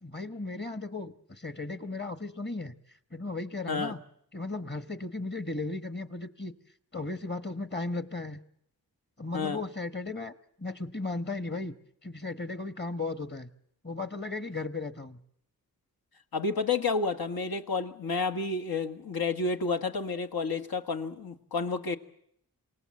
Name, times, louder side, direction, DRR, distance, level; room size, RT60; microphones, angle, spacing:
voice 1, 0.0-2.7 3.1-4.0 4.3-6.5 6.9-8.4 9.2-10.3 10.6-11.7 12.0-13.5 13.8-15.2, left 3 dB, 30° left, 11 dB, 1.3 m, -36 dB
voice 2, 16.3-22.0, left 4 dB, 80° left, 6 dB, 1.5 m, -30 dB
27.5 x 18.5 x 7.7 m, 0.72 s
wide cardioid pair, 75°, 36 cm